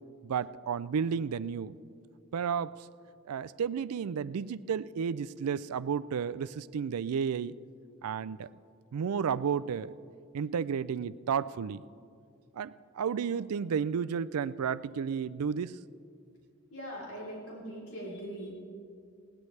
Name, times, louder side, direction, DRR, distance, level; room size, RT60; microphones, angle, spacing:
voice 1, 0.2-1.7 2.3-2.7 3.3-7.6 8.0-8.5 8.9-9.9 10.3-11.8 12.6-15.7, right 7 dB, 85° right, 17 dB, 0.4 m, -32 dB
voice 2, 16.7-18.5, equal, 75° left, -4 dB, 3.4 m, -41 dB
20.0 x 17.5 x 3.3 m, 2.4 s
head